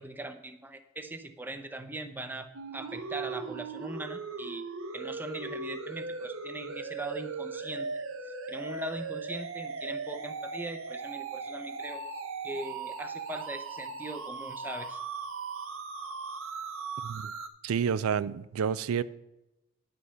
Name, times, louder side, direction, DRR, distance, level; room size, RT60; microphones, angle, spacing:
voice 1, 0.0-4.6 4.9-7.9 8.2-12.0 12.4-15.0, right 1 dB, 10° right, 8 dB, 0.6 m, -40 dB
sound 1, 2.5-17.5, right 4 dB, 70° right, 0.8 m, -38 dB
voice 2, 17.6-19.0, right 7 dB, 85° right, 16 dB, 0.4 m, -29 dB
9.7 x 5.2 x 5.7 m, 0.93 s
head